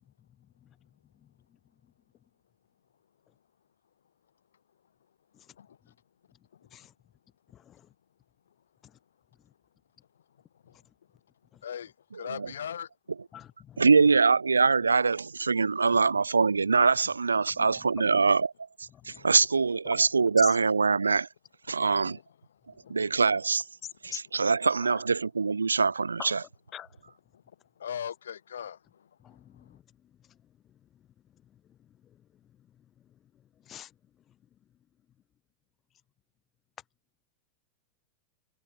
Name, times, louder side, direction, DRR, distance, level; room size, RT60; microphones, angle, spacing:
voice 1, 5.5-5.9 6.5-6.8 10.5-10.8 11.6-12.9 19.1-19.3 19.9-20.0 21.7-22.2 22.6-23.0 24.0-24.4 27.3-29.8, left 8 dB, 65° left, 1.7 m, -42 dB
voice 2, 7.5-7.9 8.8-8.9 11.5-11.6 13.3-13.8 17.6-17.7 18.9-19.2 19.9-20.0 20.4-20.5 24.1-24.2 24.8-25.0 26.2-26.4 26.7-26.9 29.2-29.8 30.3-30.4 31.7-31.8 32.0-32.2 33.6-33.9, left 10 dB, 30° left, 0.7 m, -44 dB
voice 3, 13.8-18.5 18.8-21.3 21.7-22.2 22.9-23.6 24.0-26.4, right 4 dB, 75° right, 0.7 m, -24 dB
figure-of-eight pair, 90°, 0 cm